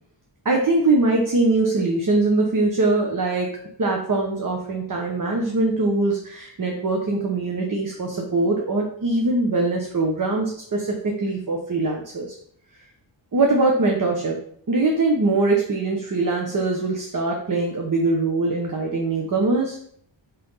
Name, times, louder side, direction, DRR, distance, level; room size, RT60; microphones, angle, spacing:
voice 1, 0.4-12.3 13.3-14.4 14.7-19.8, right 2 dB, 45° right, 0 dB, 1.1 m, -22 dB
5.8 x 4.3 x 5.6 m, 0.62 s
wide cardioid pair, 170°, 46 cm